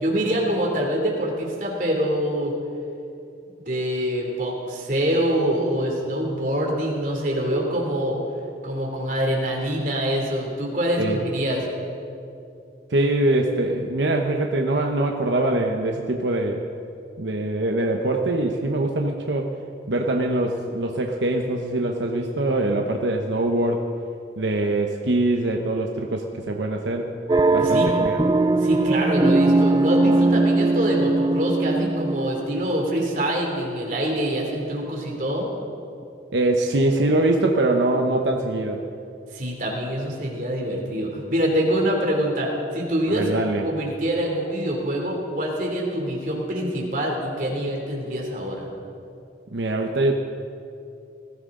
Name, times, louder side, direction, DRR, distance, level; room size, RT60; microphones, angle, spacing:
voice 1, 0.0-2.6 3.7-8.2 8.6-11.6 27.6-27.9 28.5-35.5 39.3-43.3 43.6-48.7, equal, 45° right, -1 dB, 2.9 m, -25 dB
voice 2, 12.9-16.7 17.2-19.5 19.9-23.9 24.4-27.1 27.5-28.2 36.3-38.8 43.1-43.7 49.5-50.1, right 2 dB, 90° right, 2 dB, 0.9 m, -23 dB
sound 1, 27.3-32.7, right 2 dB, 20° right, 0.3 m, -20 dB
19.5 x 15.5 x 3.8 m, 2.6 s
head